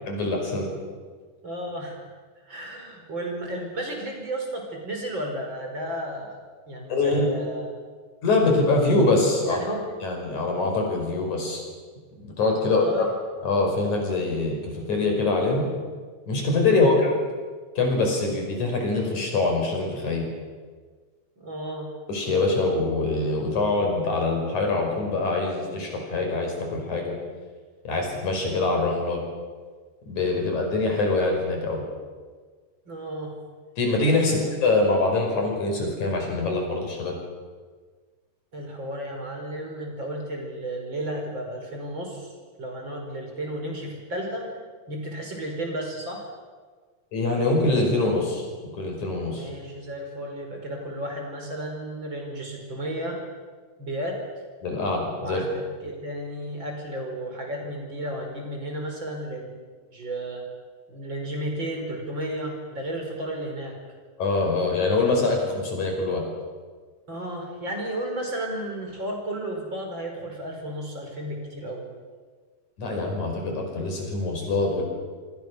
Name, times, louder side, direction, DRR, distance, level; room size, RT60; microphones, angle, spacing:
voice 1, 0.1-0.7 6.9-7.3 8.2-9.6 10.0-11.6 12.2-12.9 13.4-15.7 16.3-17.1 17.8-20.3 22.1-27.2 27.9-29.2 30.1-31.8 33.8-37.2 47.1-48.5 48.7-49.5 54.6-55.4 64.2-66.2 72.8-74.8, left 3 dB, 80° left, 2 dB, 6.8 m, -24 dB
voice 2, 1.4-2.1 2.4-6.4 6.7-7.7 9.4-9.8 12.6-13.1 16.6-17.0 21.4-21.9 32.9-33.3 34.2-34.4 38.5-42.3 42.6-44.5 44.9-46.3 49.3-53.2 53.8-54.2 55.2-59.5 59.9-60.4 60.9-63.7 67.1-71.8, right 1 dB, 40° right, 1 dB, 5.8 m, -33 dB
27.5 x 25.5 x 6.4 m, 1.5 s
omnidirectional pair, 3.4 m